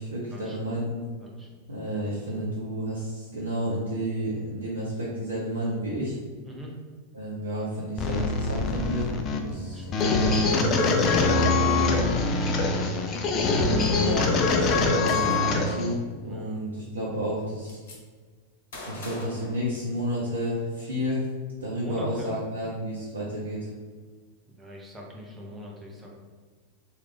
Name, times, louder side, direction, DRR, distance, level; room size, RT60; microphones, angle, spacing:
voice 1, 0.0-1.0 1.7-6.2 7.1-9.1 9.4-12.0 13.5-17.8 18.9-21.3 21.6-23.7, equal, 70° right, -6 dB, 0.6 m, -31 dB
voice 2, 1.2-1.5 6.4-6.7 9.7-9.9 16.2-16.6 21.8-22.3 24.6-26.2, equal, 15° right, -2 dB, 0.7 m, -41 dB
sound 1, 8.0-15.9, left 3 dB, 30° left, 0.4 m, -24 dB
Gunshot gunfire, 15.1-15.7 16.9-17.0 17.3-18.0 18.7-20.2, left 2 dB, 60° left, 0.8 m, -41 dB
3.2 x 2.3 x 3.3 m, 1.5 s
figure-of-eight pair, 90°, 0 cm